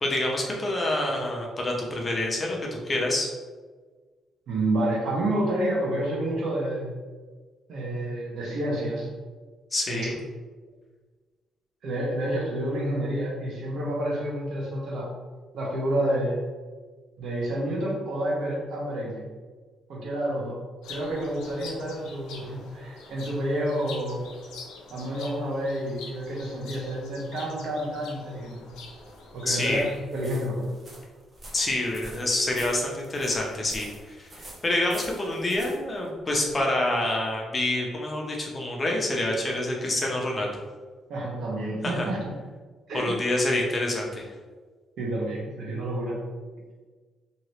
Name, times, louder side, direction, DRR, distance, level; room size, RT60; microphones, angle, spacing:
voice 1, 0.0-3.3 9.7-10.1 29.5-29.8 31.5-40.6 41.8-42.1 42.9-44.2, left 1 dB, 30° left, -1 dB, 0.7 m, -27 dB
voice 2, 4.5-7.0 7.7-9.1 9.9-10.1 11.8-15.1 15.5-16.4 17.2-19.3 19.9-20.6 20.9-24.2 24.9-28.6 29.3-29.8 30.1-30.7 41.1-42.2 42.9-43.1 45.0-46.2, right 1 dB, 70° right, -3 dB, 1.0 m, -29 dB
sound 1, 20.8-30.0, left 4 dB, 90° left, 0.5 m, -45 dB
sound 2, 28.5-36.7, right 1 dB, 30° right, 0.9 m, -47 dB
2.8 x 2.8 x 3.1 m, 1.4 s
cardioid pair, 90°, 0 cm